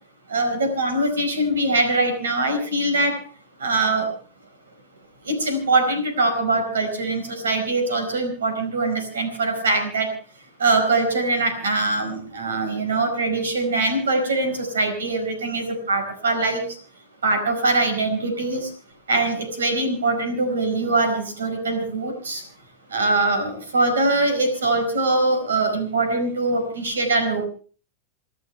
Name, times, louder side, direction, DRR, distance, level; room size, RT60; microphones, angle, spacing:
voice 1, 0.3-3.2 3.6-4.1 5.2-10.1 10.6-16.8 17.2-18.7 19.1-22.4 22.9-27.5, right 2 dB, 90° right, 6 dB, 4.9 m, -22 dB
29.0 x 12.5 x 3.4 m, 0.39 s
hypercardioid pair, 105°, 0 cm